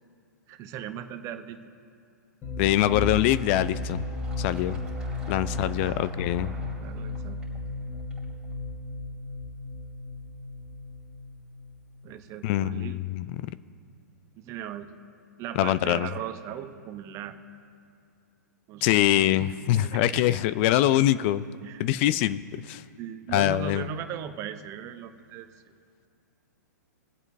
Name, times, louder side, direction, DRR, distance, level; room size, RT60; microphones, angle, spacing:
voice 1, 0.5-1.6 5.8-6.0 6.8-7.4 12.0-13.0 14.4-14.9 15.4-17.4 18.7-19.5 19.8-20.4 21.6-21.8 23.0-25.5, right 9 dB, 30° right, 8 dB, 0.8 m, -38 dB
sound 1, 2.4-12.1, left 2 dB, 20° left, 1.2 m, -35 dB
voice 2, 2.6-4.0 4.4-4.8 5.3-6.5 12.4-13.3 15.6-16.1 18.8-21.4 21.8-22.8 23.3-23.9, left 13 dB, 40° left, 16 dB, 0.4 m, -24 dB
Fill (with liquid), 3.1-8.5, right 3 dB, 10° right, 2.8 m, -49 dB
22.5 x 8.0 x 2.6 m, 2.3 s
hypercardioid pair, 120°, 10 cm